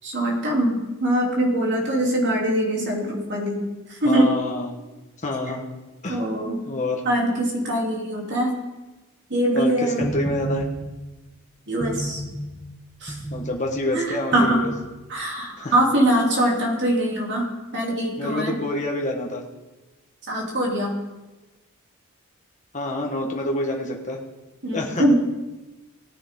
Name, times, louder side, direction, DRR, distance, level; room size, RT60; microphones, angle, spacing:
voice 1, 0.0-4.4 6.1-6.6 7.0-8.6 9.3-10.1 11.7-12.2 13.0-13.2 13.9-14.6 15.1-18.6 20.3-21.0 24.6-25.2, right 1 dB, 55° right, -2 dB, 3.2 m, -23 dB
voice 2, 4.0-4.8 5.2-5.6 6.0-6.2 6.7-7.0 9.5-10.7 13.3-14.7 15.6-15.7 18.2-19.4 22.7-24.2 24.7-25.0, left 1 dB, 35° left, 0 dB, 1.4 m, -27 dB
sound 1, 10.0-11.1 11.8-12.7 13.1-13.7 14.3-15.0, right 2 dB, 5° right, 1.3 m, -32 dB
18.5 x 9.6 x 3.8 m, 1.1 s
head